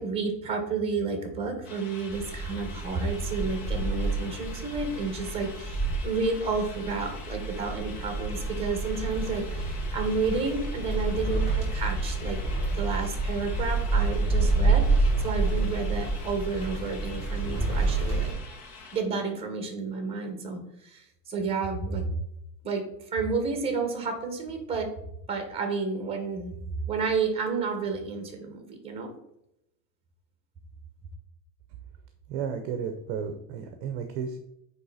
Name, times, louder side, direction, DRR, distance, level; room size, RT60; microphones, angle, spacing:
voice 1, 0.0-12.4 12.7-18.3 18.9-22.1 22.6-24.9 25.3-26.5 26.9-29.1, right 4 dB, 10° right, 5 dB, 1.2 m, -31 dB
sound 1, 1.6-19.0, left 4 dB, 75° left, 1.9 m, -46 dB
sound 2, 2.1-18.3, right 3 dB, 10° left, 2.5 m, -28 dB
voice 2, 32.3-34.4, right 7 dB, 40° right, 7 dB, 0.7 m, -33 dB
9.0 x 3.4 x 4.0 m, 0.82 s
supercardioid pair, 165°, 48 cm